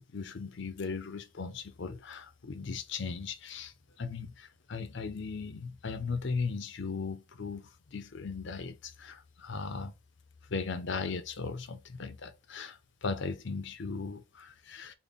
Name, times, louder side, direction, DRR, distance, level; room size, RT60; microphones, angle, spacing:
voice 1, 0.0-9.9 10.5-14.9, left 4 dB, 55° left, 0.5 m, -38 dB
4.0 x 2.1 x 3.5 m
head